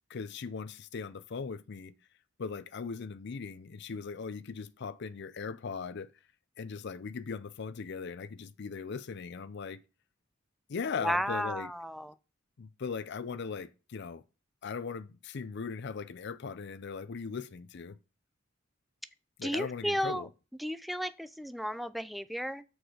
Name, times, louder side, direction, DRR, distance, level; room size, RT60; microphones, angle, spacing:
voice 1, 0.1-1.9 2.4-6.1 6.6-9.8 10.7-11.7 12.6-14.2 14.6-18.0 19.4-20.3, left 5 dB, 60° left, 0.5 m, -39 dB
voice 2, 11.0-12.1 19.4-20.3 20.6-22.6, equal, ahead, 0.4 m, -33 dB
6.4 x 4.7 x 4.9 m
head